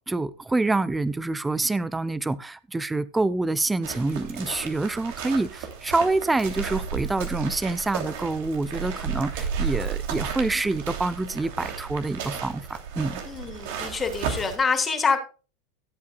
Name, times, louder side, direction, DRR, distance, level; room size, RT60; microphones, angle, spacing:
voice 1, 0.1-13.2, right 2 dB, 10° right, 0.8 m, -26 dB
sound 1, 3.8-14.6, right 7 dB, 65° right, 2.9 m, -33 dB
voice 2, 13.2-15.2, left 5 dB, 25° left, 3.1 m, -26 dB
16.5 x 8.5 x 2.3 m
hypercardioid pair, 95°, 0 cm